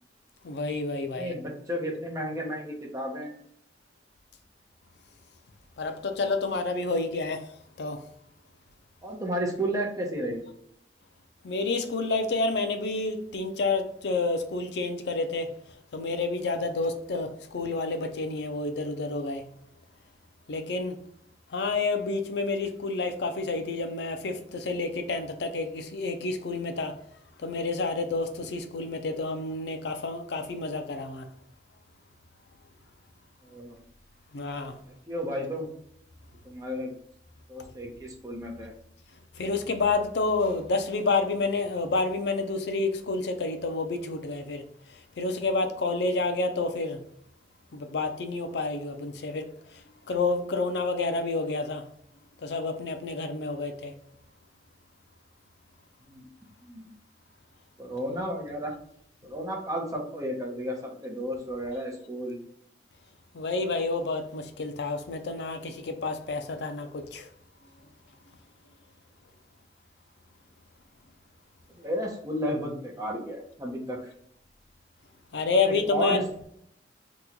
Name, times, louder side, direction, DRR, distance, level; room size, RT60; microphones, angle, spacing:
voice 1, 0.4-1.3 5.8-7.5 7.8-8.0 11.4-15.5 15.9-19.5 20.5-20.9 21.5-26.9 27.4-31.3 34.3-34.7 39.3-44.7 45.2-47.0 47.7-51.8 52.4-53.9 63.3-67.3 75.3-76.2, left 3 dB, 70° left, 0.4 m, -29 dB
voice 2, 1.1-3.3 9.0-10.4 33.5-33.8 35.1-35.7 36.4-36.9 37.5-38.7 56.1-56.2 56.7-56.9 57.8-58.7 59.2-62.4 71.8-74.1 75.7-76.2, equal, 20° right, 0.7 m, -32 dB
2.9 x 2.3 x 3.7 m
head